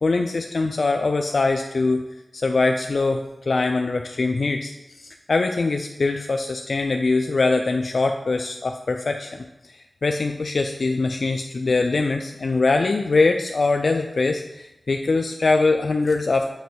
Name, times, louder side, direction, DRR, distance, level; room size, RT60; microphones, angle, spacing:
voice 1, 0.0-2.0 2.3-9.3 9.7-16.5, left 3 dB, 70° left, 4 dB, 0.3 m, -22 dB
7.3 x 3.0 x 4.5 m, 0.96 s
cardioid pair, 45°, 0 cm